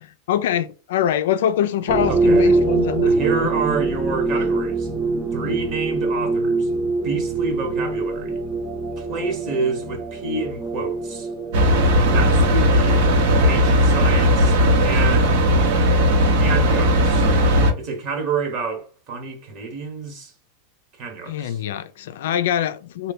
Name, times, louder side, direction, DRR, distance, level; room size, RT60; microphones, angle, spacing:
voice 1, 0.0-3.1 5.4-5.5 12.5-12.7 21.3-23.1, left 10 dB, 75° left, 0.4 m, -24 dB
sound 1, 1.9-15.0, right 3 dB, 15° right, 0.6 m, -24 dB
voice 2, 2.1-2.6 3.0-4.9 5.3-6.7 7.0-8.4 9.0-11.3 12.1-13.1 13.5-14.6 14.8-15.4 16.2-17.3 17.8-20.3 21.0-21.6, right 4 dB, 40° right, 1.2 m, -28 dB
sound 2, 11.5-17.7, equal, 65° right, 0.9 m, -17 dB
3.1 x 2.2 x 4.0 m
supercardioid pair, 140°, 0 cm